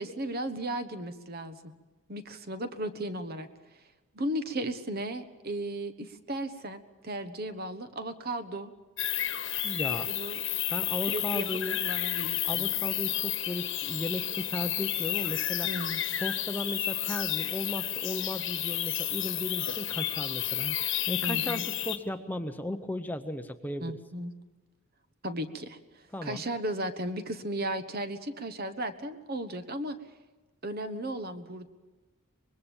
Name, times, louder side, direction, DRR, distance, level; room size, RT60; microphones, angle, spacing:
voice 1, 0.0-1.7 2.1-3.5 4.1-8.7 10.1-10.4 11.1-12.7 15.6-16.0 21.2-21.6 23.8-24.3 25.2-30.0 30.6-31.7, right 1 dB, 45° right, 10 dB, 1.3 m, -35 dB
sound 1, 9.0-22.0, left 13 dB, 55° left, 1.4 m, -31 dB
voice 2, 9.6-10.1 10.7-11.8 12.4-15.7 16.2-24.0 26.1-26.4, left 1 dB, 10° left, 8 dB, 0.8 m, -36 dB
25.0 x 21.0 x 7.2 m, 1.2 s
head